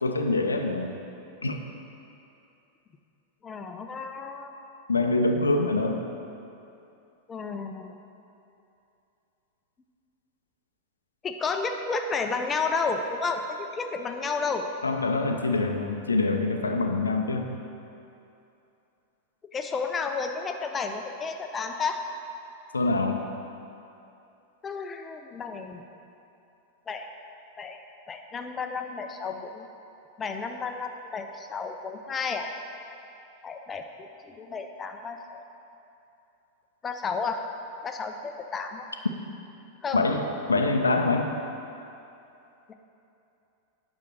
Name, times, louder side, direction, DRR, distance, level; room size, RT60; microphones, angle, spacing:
voice 1, 0.0-1.0 1.4-1.6 4.9-6.1 14.8-17.6 22.7-23.3 39.9-41.4, left 3 dB, 75° left, 4 dB, 0.8 m, -25 dB
voice 2, 3.4-4.5 7.3-7.9 11.2-14.7 19.5-22.0 24.6-25.8 26.9-27.1 27.6-27.8 28.1-29.7 30.2-32.5 33.4-35.5 36.8-37.4 37.8-38.9 39.8-40.0 42.7-42.8, left 4 dB, 20° left, 5 dB, 0.8 m, -32 dB
9.3 x 6.4 x 6.0 m, 2.8 s
figure-of-eight pair, 90°, 0 cm